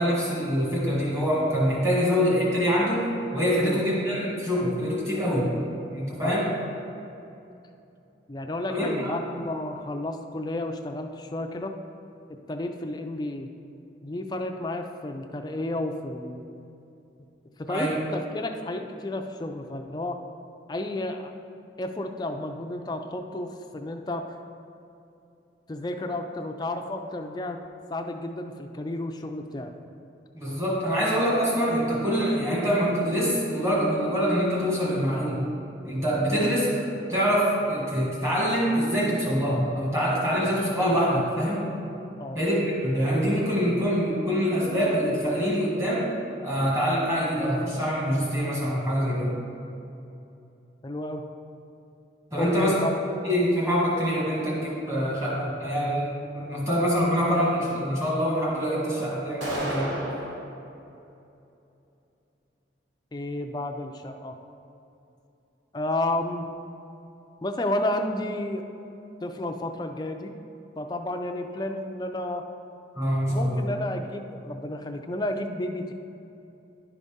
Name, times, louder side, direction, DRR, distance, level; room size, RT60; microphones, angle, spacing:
voice 1, 0.0-5.5 5.9-6.5 8.7-9.1 17.7-18.0 30.3-35.4 35.8-36.7 37.1-41.7 42.3-46.1 46.4-49.4 52.3-52.7 53.2-56.1 56.3-59.9 72.9-73.6, equal, 15° right, -6 dB, 1.6 m, -25 dB
voice 2, 8.3-11.7 12.5-13.5 14.0-16.5 17.6-20.2 20.7-21.3 21.8-24.3 25.7-27.6 27.9-29.7 36.3-36.5 40.3-40.5 42.2-42.4 50.8-51.2 52.4-52.9 63.1-64.4 65.7-66.5 67.4-68.7 69.2-70.3 70.8-72.5 73.3-75.9, left 1 dB, 20° left, 5 dB, 0.3 m, -31 dB
sound 1, 59.4-60.4, equal, 75° right, 1.2 m, -31 dB
11.0 x 4.0 x 3.6 m, 2.8 s
head